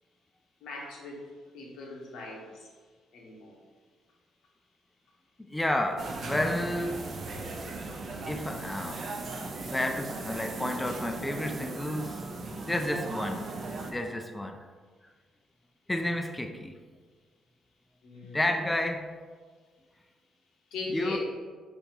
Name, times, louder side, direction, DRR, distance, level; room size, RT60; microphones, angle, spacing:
voice 1, 0.6-1.3 1.5-2.7 3.1-3.5 18.0-18.4 20.7-21.2, left 3 dB, 85° left, -2 dB, 1.0 m, -39 dB
voice 2, 5.5-7.0 8.0-9.0 9.6-12.2 12.6-13.5 13.9-14.6 15.9-16.7 18.3-19.1 20.9-21.2, left 1 dB, 10° left, 5 dB, 0.3 m, -31 dB
sound 1, 6.0-13.9, right 3 dB, 50° right, 0.5 m, -37 dB
3.9 x 2.8 x 4.2 m, 1.5 s
cardioid pair, 90°, 0 cm